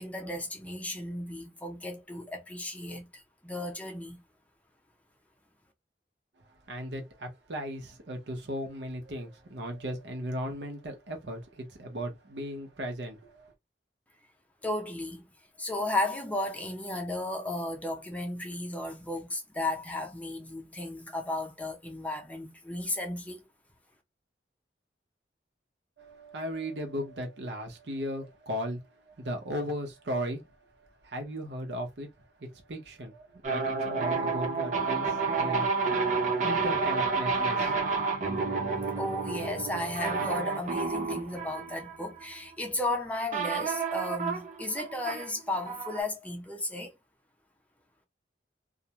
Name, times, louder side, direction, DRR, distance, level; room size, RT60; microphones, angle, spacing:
voice 1, 0.0-4.2 14.6-15.3 15.6-23.5 39.0-46.9, left 2 dB, 10° left, 0.5 m, -34 dB
voice 2, 6.7-13.5 26.0-32.1 32.5-38.1, equal, 75° right, 0.8 m, -37 dB
sound 1, 33.4-42.6 43.3-46.0, right 4 dB, 40° right, 0.6 m, -30 dB
2.4 x 2.1 x 2.8 m
head